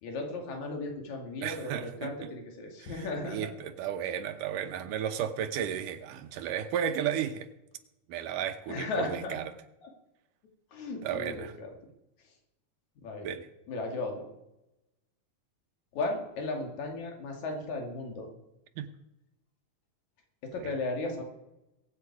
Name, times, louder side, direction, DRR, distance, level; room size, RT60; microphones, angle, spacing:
voice 1, 0.0-3.5 8.7-9.4 9.8-9.9 10.7-11.7 13.0-13.3 13.7-14.2 15.9-18.3 20.4-21.2, left 2 dB, 65° left, 2 dB, 3.7 m, -35 dB
voice 2, 1.4-2.3 2.8-7.5 8.1-9.5 11.0-11.5 13.2-13.5 18.8-18.9 20.6-20.7, right 9 dB, 90° right, 8 dB, 2.6 m, -34 dB
22.0 x 8.9 x 4.8 m, 0.92 s
omnidirectional pair, 3.6 m